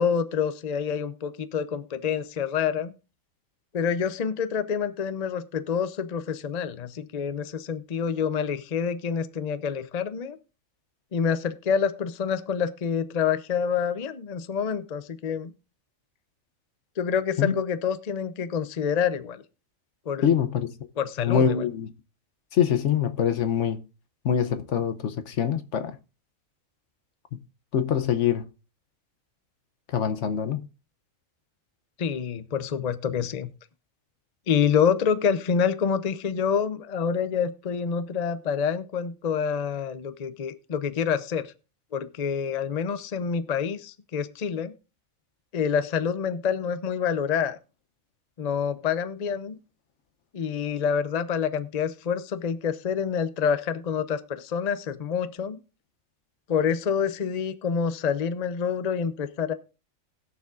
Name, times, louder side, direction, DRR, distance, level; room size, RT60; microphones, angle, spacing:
voice 1, 0.0-2.9 3.7-10.4 11.1-15.5 17.0-19.4 20.1-20.3 21.0-21.7 32.0-33.5 34.5-41.5 41.9-44.7 45.5-47.6 48.4-49.6 50.3-55.6 56.5-59.5, left 7 dB, 40° left, 0.7 m, -27 dB
voice 2, 20.2-20.7 21.2-21.9 22.5-23.8 24.2-26.0 27.3-27.4 27.7-28.4 29.9-30.6, left 8 dB, 65° left, 1.0 m, -24 dB
20.5 x 7.0 x 2.5 m
omnidirectional pair, 1.4 m